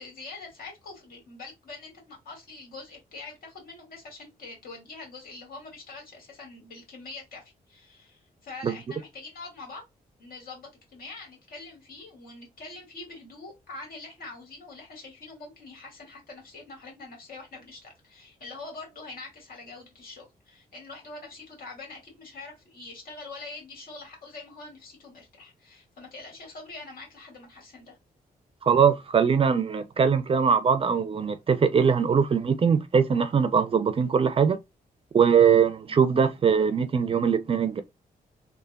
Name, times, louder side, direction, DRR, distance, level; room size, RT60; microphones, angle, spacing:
voice 1, 0.0-9.8 10.2-28.0, left 3 dB, 70° left, 1.8 m, -44 dB
voice 2, 28.6-34.6 35.1-37.8, right 6 dB, 35° right, 0.4 m, -21 dB
3.3 x 2.2 x 2.2 m
cardioid pair, 100°, 16 cm